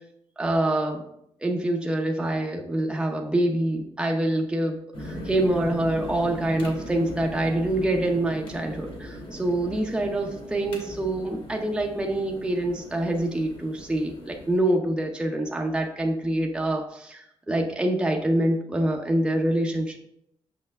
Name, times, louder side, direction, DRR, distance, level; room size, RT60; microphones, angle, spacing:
voice 1, 0.4-1.0 1.4-20.0, right 1 dB, 10° right, 1 dB, 0.7 m, -26 dB
sound 1, 4.9-14.6, equal, 60° left, 2.3 m, -39 dB
6.7 x 5.5 x 3.5 m, 0.73 s
wide cardioid pair, 170°, 10 cm